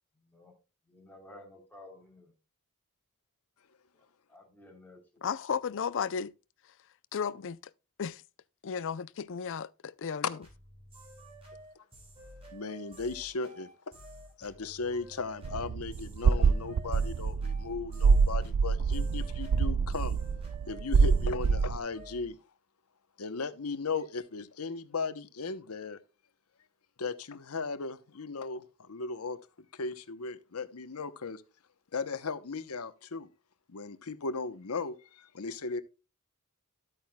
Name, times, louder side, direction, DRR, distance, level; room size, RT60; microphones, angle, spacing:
voice 1, 0.2-0.5 0.9-2.3 4.3-5.3, left 1 dB, 10° left, 3.4 m, -53 dB
voice 2, 5.2-6.3 7.1-7.6 8.0-8.2 8.6-10.2, left 6 dB, 60° left, 0.5 m, -34 dB
sound 1, 10.4-22.3, right 1 dB, 25° right, 4.6 m, -51 dB
voice 3, 12.5-13.9 14.4-20.2 20.7-22.4 23.2-26.0 27.0-29.4 29.7-31.4 31.9-33.3 33.7-35.8, left 4 dB, 80° left, 0.9 m, -37 dB
sound 2, 15.4-21.8, right 5 dB, 75° right, 0.4 m, -26 dB
12.5 x 8.8 x 2.2 m
head